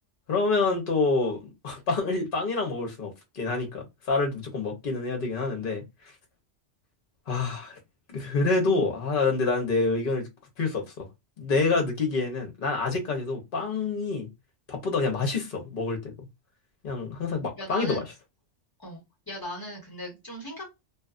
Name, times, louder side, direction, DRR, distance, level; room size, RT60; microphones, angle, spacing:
voice 1, 0.3-5.8 7.3-7.8 8.1-10.3 10.6-11.1 11.4-14.3 14.7-16.1 16.8-18.0, left 3 dB, 50° left, 1.0 m, -27 dB
voice 2, 17.6-18.0 18.8-20.7, equal, 20° left, 1.2 m, -38 dB
2.7 x 2.4 x 2.4 m
omnidirectional pair, 1.3 m